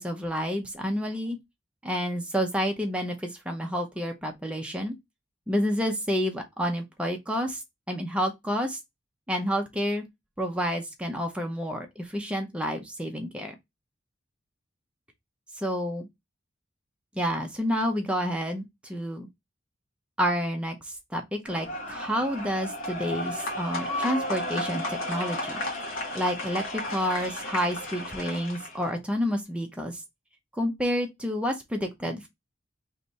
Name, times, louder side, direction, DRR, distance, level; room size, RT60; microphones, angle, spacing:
voice 1, 0.0-1.4 1.8-4.9 5.5-7.6 7.9-8.8 9.3-10.0 10.4-13.5 15.5-16.1 17.1-19.3 20.2-25.6 26.1-30.0 30.6-32.3, equal, 5° right, 0.7 m, -29 dB
sound 1, 21.5-28.9, left 1 dB, 90° left, 1.2 m, -33 dB
3.3 x 2.7 x 4.1 m
head